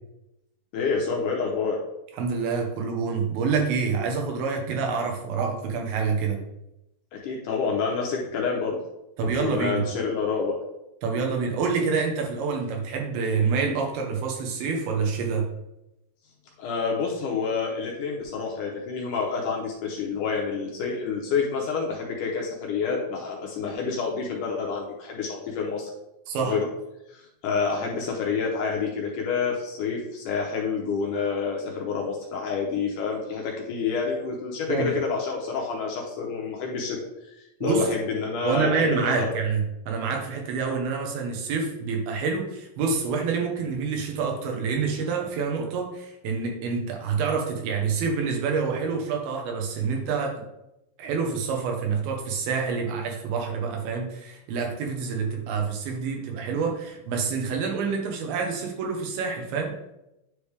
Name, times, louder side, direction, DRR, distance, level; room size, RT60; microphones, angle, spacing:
voice 1, 0.7-1.8 7.1-8.8 9.2-10.6 16.6-25.9 26.4-26.7 27.1-37.0 37.4-39.3, left 5 dB, 75° left, 0 dB, 2.1 m, -28 dB
voice 2, 2.2-6.4 9.2-9.9 11.0-15.5 26.3-26.6 34.7-35.0 37.6-37.9 38.4-50.4 51.0-59.7, right 5 dB, 85° right, 2 dB, 3.0 m, -27 dB
9.9 x 3.4 x 3.3 m, 0.88 s
omnidirectional pair, 4.2 m